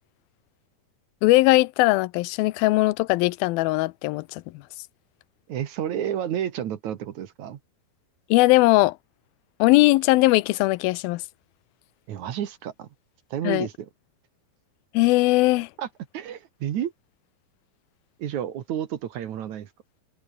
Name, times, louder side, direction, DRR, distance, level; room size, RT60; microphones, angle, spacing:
voice 1, 1.2-4.4 8.3-9.0 9.6-11.2 13.4-13.7 14.9-15.7, left 20 dB, 90° left, 2.5 m, -19 dB
voice 2, 5.5-7.6 12.1-12.9 13.3-13.9 15.8-15.9 16.1-16.9 18.2-19.7, right 10 dB, 60° right, 2.5 m, -30 dB
omnidirectional pair, 4.2 m